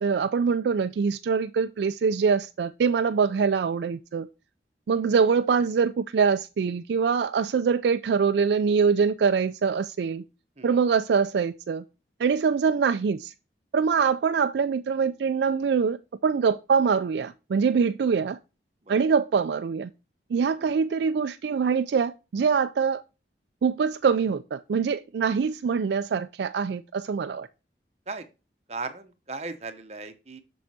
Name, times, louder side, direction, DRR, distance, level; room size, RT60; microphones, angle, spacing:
voice 1, 0.0-4.3 4.9-10.2 10.6-11.8 12.2-13.3 13.7-18.4 18.9-19.9 20.3-23.0 23.6-27.5, right 5 dB, 70° right, 0.3 m, -24 dB
voice 2, 28.7-30.4, right 3 dB, 35° right, 0.9 m, -37 dB
7.8 x 6.2 x 2.7 m
head